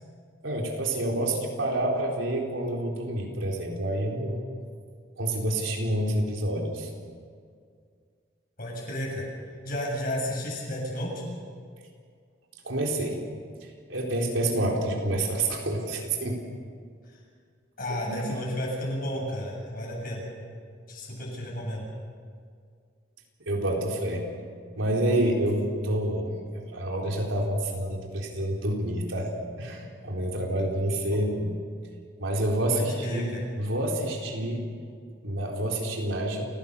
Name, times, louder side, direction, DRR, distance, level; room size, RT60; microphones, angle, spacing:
voice 1, 0.4-4.4 5.2-6.9 12.6-13.2 13.6-16.4 18.0-18.3 23.5-24.2 24.7-29.3 29.6-31.5 32.2-33.3 33.6-34.6 35.2-36.4, right 1 dB, 90° right, 0 dB, 4.1 m, -28 dB
voice 2, 8.6-9.2 9.6-11.2 17.1-17.2 17.8-20.2 20.9-21.8 32.7-33.4, equal, 50° left, -2 dB, 7.9 m, -32 dB
29.0 x 16.5 x 6.9 m, 2.1 s
head